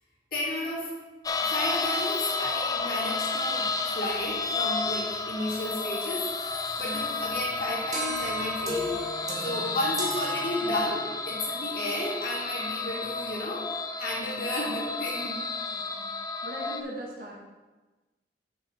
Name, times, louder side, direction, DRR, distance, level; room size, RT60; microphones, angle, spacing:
voice 1, 0.3-0.9 1.4-6.2 6.5-9.0 9.4-13.7 14.0-15.5, left 1 dB, 55° left, -6 dB, 2.6 m, -33 dB
sound 1, 1.3-16.8, left 3 dB, 20° left, 0.4 m, -31 dB
sound 2, 7.9-11.2, equal, 20° right, 1.0 m, -35 dB
voice 2, 15.7-16.1 16.4-17.3, equal, 55° right, -2 dB, 1.7 m, -40 dB
7.0 x 5.7 x 4.4 m, 1.2 s
head